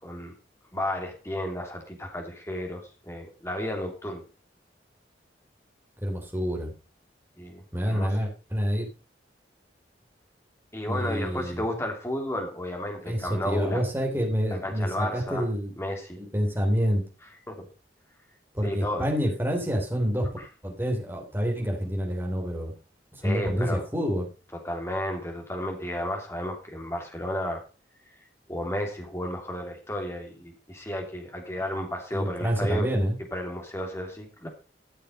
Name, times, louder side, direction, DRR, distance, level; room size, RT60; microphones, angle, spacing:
voice 1, 0.0-0.3 0.7-4.2 7.4-8.1 10.7-13.8 14.6-15.5 15.8-16.2 17.5-17.7 18.6-19.0 23.2-23.8 24.6-27.6 28.5-32.9 33.3-34.5, left 1 dB, 15° left, 2 dB, 3.0 m, -32 dB
voice 2, 6.0-6.7 7.7-8.9 10.9-11.6 13.0-15.7 16.2-17.0 18.5-20.3 20.6-22.7 23.1-24.3 32.1-33.2, equal, 15° right, 0 dB, 3.2 m, -27 dB
13.5 x 6.7 x 5.2 m, 0.32 s
head